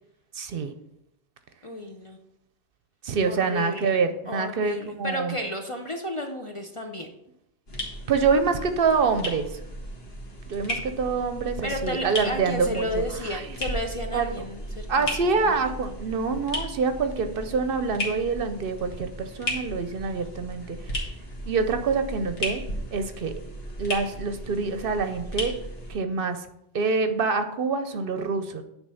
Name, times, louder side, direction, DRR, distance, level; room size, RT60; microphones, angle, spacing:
voice 1, 0.3-0.7 3.0-5.4 8.1-9.6 10.5-13.0 13.3-13.4 14.1-14.4 14.9-20.9 21.5-22.6 22.9-23.3 23.8-25.5 25.9-26.5 26.7-28.6, right 4 dB, 60° right, 9 dB, 0.7 m, -26 dB
voice 2, 1.6-2.2 3.2-3.9 4.3-7.1 11.6-15.7, left 1 dB, 40° left, 3 dB, 0.5 m, -33 dB
sound 1, 7.7-25.9, equal, 60° left, 1.8 m, -35 dB
9.4 x 3.3 x 5.5 m, 0.81 s
omnidirectional pair, 1.1 m